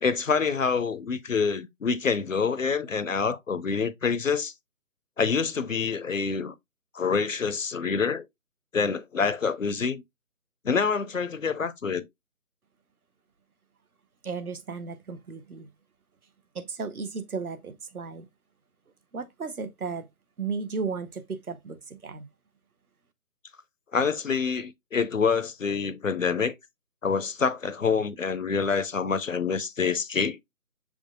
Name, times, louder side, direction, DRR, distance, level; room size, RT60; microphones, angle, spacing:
voice 1, 0.0-4.5 5.2-6.5 6.9-8.2 8.7-10.0 10.6-12.0 23.9-26.5 27.0-30.4, left 5 dB, 60° left, 0.5 m, -26 dB
voice 2, 14.2-15.7 16.5-18.3 19.1-20.1 20.4-22.3, right 5 dB, 70° right, 0.9 m, -34 dB
6.1 x 3.6 x 2.3 m
figure-of-eight pair, 155°, 46 cm